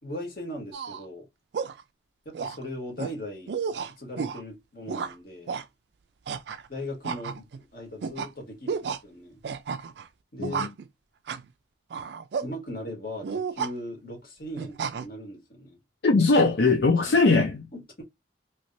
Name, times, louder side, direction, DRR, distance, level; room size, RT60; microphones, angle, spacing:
voice 1, 0.0-1.2 2.2-3.5 3.9-5.5 6.7-9.4 10.3-10.7 12.4-15.8 17.1-17.2 17.7-18.0, left 1 dB, 55° left, 1.7 m, -39 dB
sound 1, 0.7-1.0 1.5-1.8 2.3-2.6 3.0-3.1 3.5-4.4 4.9-5.1 5.5-5.6 6.3-6.7 7.0-7.6 8.0-8.3 8.7-9.0 9.4-10.1 10.4-10.9 11.3-11.5 11.9-12.5 13.2-13.7 14.6-15.1, right 6 dB, 75° right, 0.4 m, -32 dB
voice 2, 16.0-17.7, left 3 dB, 75° left, 0.6 m, -20 dB
3.2 x 2.9 x 2.6 m
head